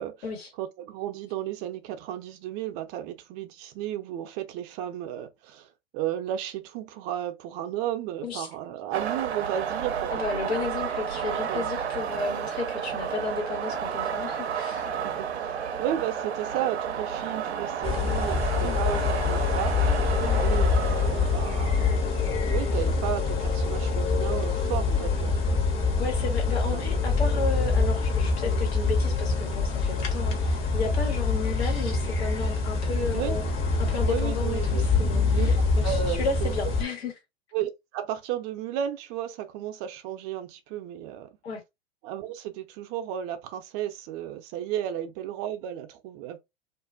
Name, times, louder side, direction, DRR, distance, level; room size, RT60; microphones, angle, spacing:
voice 1, 0.6-10.2 11.5-11.7 15.0-19.0 19.3-19.8 20.4-25.4 26.7-26.8 33.1-33.4 34.1-34.9 35.3-36.5 37.5-41.3 42.0-46.4, right 11 dB, 40° right, 0.6 m, -33 dB
sound 1, 8.9-23.8, right 7 dB, 85° right, 0.6 m, -32 dB
voice 2, 10.1-14.9 18.6-18.8 20.2-20.4 26.0-33.4 33.8-37.1 41.4-41.6, left 3 dB, 80° left, 1.3 m, -33 dB
sound 2, 17.8-36.8, left 4 dB, 40° left, 1.0 m, -25 dB
2.5 x 2.4 x 2.3 m
hypercardioid pair, 100°, 32 cm